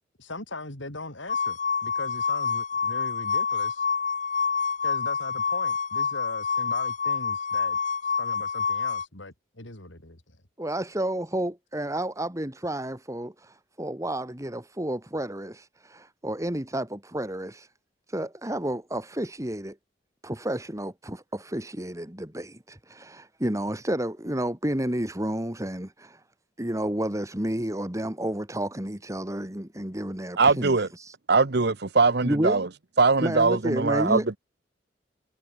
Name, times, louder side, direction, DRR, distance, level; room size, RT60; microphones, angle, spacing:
voice 1, 0.2-3.9 4.8-10.4, left 2 dB, 85° left, 5.7 m, -40 dB
sound 1, 1.3-9.0, left 6 dB, 40° left, 2.6 m, -27 dB
voice 2, 10.6-17.7 18.1-19.8 20.2-26.2 26.6-31.1 32.2-32.6 33.2-34.3, right 1 dB, 15° right, 2.5 m, -31 dB
voice 3, 30.4-30.9 31.3-32.7 33.0-34.4, right 4 dB, 60° right, 1.1 m, -21 dB
head